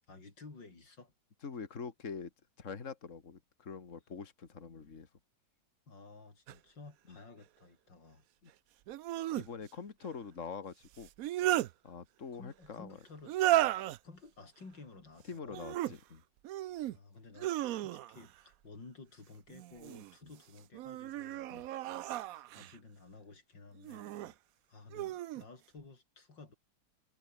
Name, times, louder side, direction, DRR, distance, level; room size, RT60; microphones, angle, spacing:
voice 1, 0.1-1.1 5.9-8.2 12.3-13.4 14.0-15.6 16.9-21.5 22.2-24.1 24.7-26.6, left 3 dB, 85° left, 5.2 m, -54 dB
voice 2, 1.4-2.3 2.6-5.1 7.1-7.2 8.4-8.5 9.4-11.1 11.8-13.0 15.3-16.2 20.2-20.3 21.5-21.7 24.2-24.3, left 5 dB, 45° left, 2.4 m, -44 dB
sound 1, 6.5-6.6 8.9-9.5 11.0-11.7 13.2-14.0 15.5-15.9 16.4-17.0 17.4-18.3 19.5-20.1 20.7-22.8 23.8-24.3 24.9-25.4, right 14 dB, 70° right, 0.9 m, -34 dB
omnidirectional pair, 1.9 m